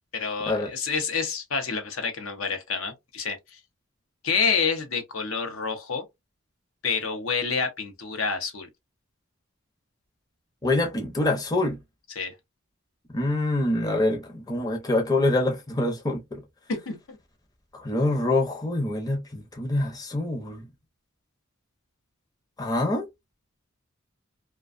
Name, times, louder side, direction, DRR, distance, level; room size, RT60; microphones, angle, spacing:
voice 1, 0.1-3.4 4.2-6.0 6.8-8.7 12.2-12.3 16.7-17.2, left 5 dB, 75° left, 0.7 m, -28 dB
voice 2, 10.6-11.8 13.1-16.4 17.7-20.7 22.6-23.1, left 2 dB, 20° left, 0.6 m, -25 dB
2.4 x 2.2 x 2.4 m
head